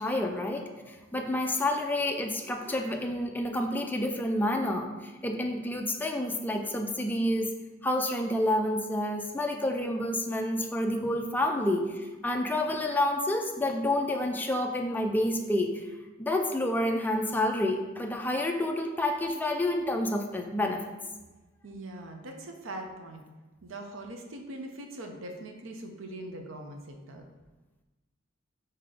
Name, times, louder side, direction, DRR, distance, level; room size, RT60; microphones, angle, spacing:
voice 1, 0.0-7.5 7.8-15.7 16.2-20.9, left 1 dB, 10° left, 3 dB, 0.3 m, -29 dB
voice 2, 21.6-23.2 23.6-27.2, right 1 dB, 75° right, 3 dB, 0.6 m, -41 dB
3.9 x 2.8 x 4.9 m, 1.2 s
head